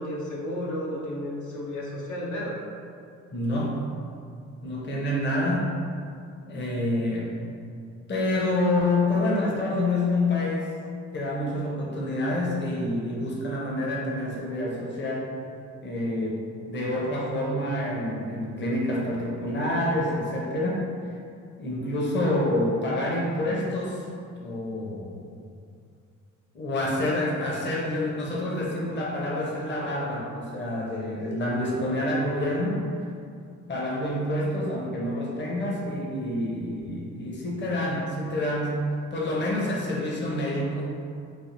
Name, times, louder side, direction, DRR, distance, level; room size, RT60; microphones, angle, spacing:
voice 1, 0.0-2.6, left 1 dB, 75° left, -5 dB, 0.6 m, -32 dB
voice 2, 3.3-3.9 4.6-5.7 6.5-7.3 8.1-10.7 11.1-15.3 15.8-20.9 21.6-25.1 26.5-32.9 33.7-41.0, left 1 dB, 35° left, -3 dB, 0.7 m, -27 dB
3.4 x 2.4 x 2.6 m, 2.3 s
cardioid pair, 90°, 30 cm